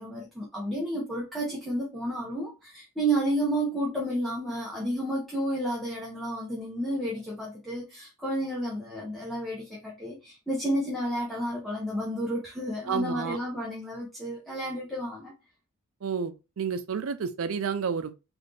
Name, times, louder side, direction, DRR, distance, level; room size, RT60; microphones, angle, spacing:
voice 1, 0.0-15.3, right 1 dB, ahead, 0.8 m, -31 dB
voice 2, 12.9-13.4 16.0-18.1, right 6 dB, 65° right, 0.4 m, -30 dB
4.0 x 2.5 x 3.3 m
head